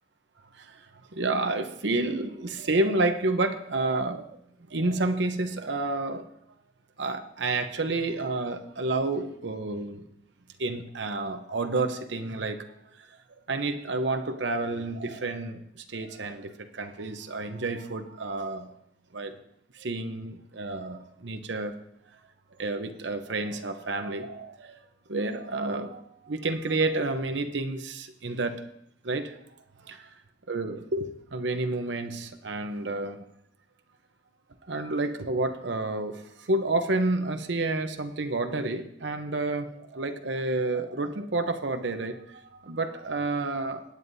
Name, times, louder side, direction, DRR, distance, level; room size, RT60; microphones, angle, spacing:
voice 1, 1.1-4.3 4.7-6.3 7.0-10.0 10.6-12.7 13.5-15.6 15.9-18.7 19.1-19.4 19.7-21.8 22.6-24.8 25.1-28.6 29.0-29.3 29.8-30.0 30.5-33.2 34.7-43.8, right 2 dB, 70° right, 0.8 m, -30 dB
19.0 x 9.3 x 2.7 m
head